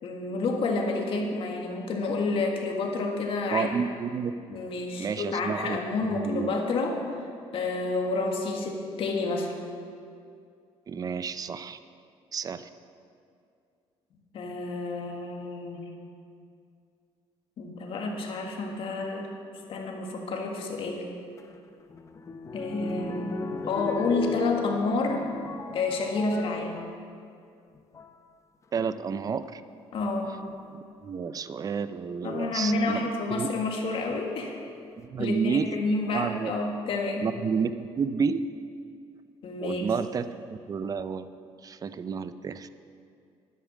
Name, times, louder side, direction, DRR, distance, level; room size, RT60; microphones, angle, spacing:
voice 1, 0.0-3.7 4.5-7.0 7.5-9.5 14.3-15.9 17.6-19.3 19.7-21.1 22.5-25.3 25.7-26.8 29.9-30.4 32.2-34.5 35.2-37.2 39.4-39.9, left 3 dB, 60° left, 1 dB, 1.8 m, -29 dB
voice 2, 3.5-4.3 5.0-5.8 6.1-6.5 10.9-11.8 12.3-12.7 28.7-29.6 30.7-33.1 33.3-33.5 35.0-35.7 36.1-36.5 37.2-38.4 39.6-40.3 40.7-41.3 41.6-42.7, right 6 dB, 35° right, 13 dB, 0.5 m, -30 dB
sound 1, 21.4-27.0 27.7-28.2 29.4-29.5 30.2-30.5 32.7-33.3 34.0-34.1 34.3-34.4, left 3 dB, 30° left, 0.7 m, -37 dB
11.5 x 9.5 x 6.3 m, 2.4 s
cardioid pair, 125°, 11 cm